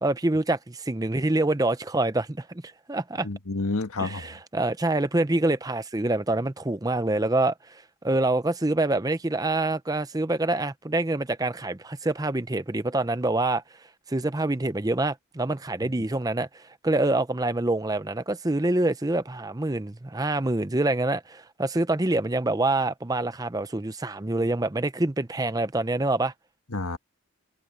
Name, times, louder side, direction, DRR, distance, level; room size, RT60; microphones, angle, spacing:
voice 1, 0.0-3.3 4.0-13.6 14.1-26.3, right 2 dB, 15° right, 0.6 m, -26 dB
voice 2, 3.2-4.4 15.8-15.9 26.7-27.0, left 2 dB, 80° left, 1.6 m, -30 dB
head